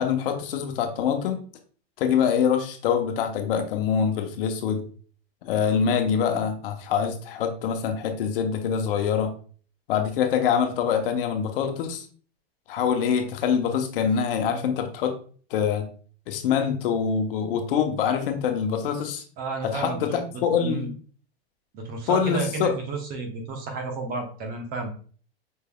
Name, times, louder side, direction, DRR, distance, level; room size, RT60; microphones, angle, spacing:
voice 1, 0.0-1.4 2.0-4.8 5.4-9.3 9.9-12.0 12.7-15.1 15.5-15.9 16.3-19.2 19.6-20.9 22.1-22.7, left 7 dB, 60° left, 5 dB, 0.9 m, -24 dB
voice 2, 19.4-20.9 21.7-24.9, right 3 dB, 30° right, 3 dB, 0.9 m, -32 dB
5.4 x 3.3 x 2.2 m, 0.42 s
supercardioid pair, 145°, 31 cm